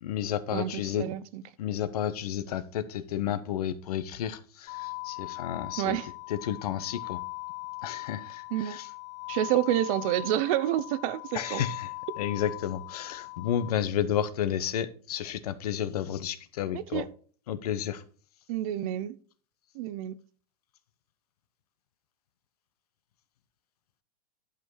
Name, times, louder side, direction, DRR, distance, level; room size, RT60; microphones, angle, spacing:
voice 1, 0.0-1.1 1.6-6.0 6.3-7.2 7.8-8.9 11.3-11.9 12.2-17.0 17.5-18.0, left 10 dB, 90° left, 1.0 m, -31 dB
voice 2, 0.5-1.4 5.8-6.1 8.5-8.8 9.3-11.7 16.7-17.1 18.5-19.2 19.7-20.2, right 12 dB, 65° right, 0.8 m, -29 dB
sound 1, 4.7-13.7, left 33 dB, 40° left, 0.6 m, -40 dB
11.0 x 5.2 x 4.7 m
supercardioid pair, 135°, 19 cm